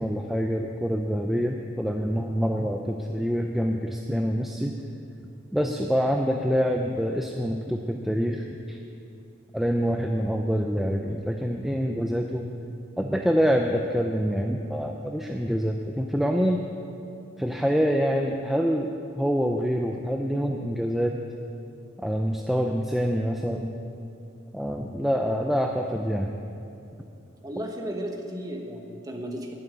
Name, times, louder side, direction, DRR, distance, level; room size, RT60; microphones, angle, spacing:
voice 1, 0.0-4.7 5.5-8.8 9.5-12.5 13.0-16.7 17.4-21.2 22.0-23.7 24.5-26.3, equal, ahead, 2 dB, 0.5 m, -26 dB
voice 2, 27.4-29.5, right 1 dB, 20° right, 2 dB, 1.2 m, -34 dB
11.0 x 8.7 x 9.5 m, 2.7 s
head